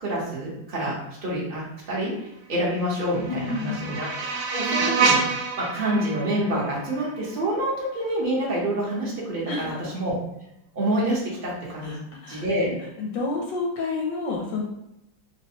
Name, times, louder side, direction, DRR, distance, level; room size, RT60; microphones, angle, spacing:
voice 1, 0.0-0.9 1.2-10.2 10.7-12.0 12.3-12.7, right 1 dB, 45° right, -6 dB, 0.6 m, -27 dB
sound 1, 2.7-7.8, right 4 dB, 75° right, 1.0 m, -27 dB
voice 2, 3.3-3.9 9.5-9.9 11.8-14.6, left 3 dB, 75° left, -1 dB, 1.1 m, -30 dB
4.2 x 2.2 x 2.7 m, 0.85 s
omnidirectional pair, 2.2 m